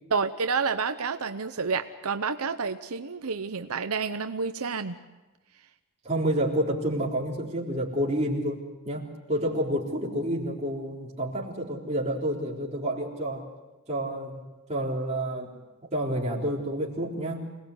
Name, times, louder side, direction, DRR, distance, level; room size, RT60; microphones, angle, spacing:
voice 1, 0.1-5.0, right 5 dB, 85° right, 8 dB, 0.9 m, -29 dB
voice 2, 6.0-13.4 13.9-14.4 14.7-15.5 15.9-17.4, right 1 dB, 30° right, -2 dB, 3.8 m, -29 dB
26.0 x 19.0 x 8.0 m, 1.1 s
head